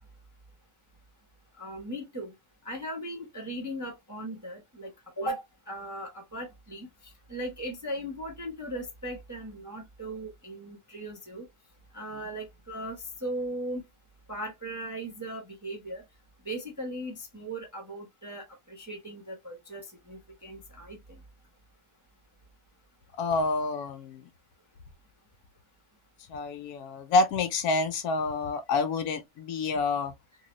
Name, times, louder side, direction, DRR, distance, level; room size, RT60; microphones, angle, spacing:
voice 1, 1.6-2.3 2.6-6.9 7.3-11.4 11.9-13.8 14.3-16.0 16.4-21.0, right 1 dB, 15° right, 0.6 m, -38 dB
voice 2, 23.2-24.3 26.3-30.1, left 3 dB, 75° left, 1.1 m, -28 dB
3.0 x 2.7 x 3.0 m
omnidirectional pair, 1.7 m